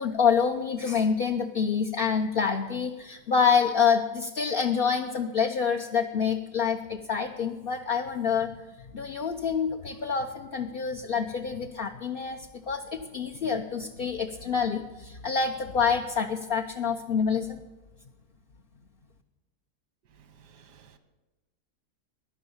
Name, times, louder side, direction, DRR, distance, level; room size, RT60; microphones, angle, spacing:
voice 1, 0.0-8.5 8.9-12.4 12.7-17.6, left 6 dB, 50° left, 0.7 m, -27 dB
voice 2, 20.0-21.0, right 7 dB, 90° right, 1.7 m, -56 dB
16.0 x 11.0 x 7.2 m
omnidirectional pair, 1.7 m